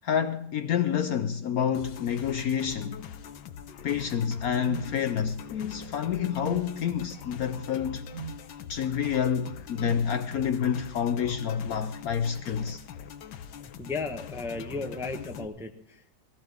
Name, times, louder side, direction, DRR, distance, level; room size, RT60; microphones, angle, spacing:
voice 1, 0.0-3.0 3.8-8.0 8.7-12.8, left 8 dB, 65° left, 1.0 m, -28 dB
sound 1, 1.7-15.5, left 8 dB, 80° left, 1.6 m, -43 dB
sound 2, 4.6-4.9 6.4-6.7 8.1-8.4 9.8-10.1, right 8 dB, 60° right, 0.7 m, -39 dB
voice 2, 13.6-16.2, left 3 dB, ahead, 0.6 m, -35 dB
18.0 x 16.5 x 3.5 m
omnidirectional pair, 2.0 m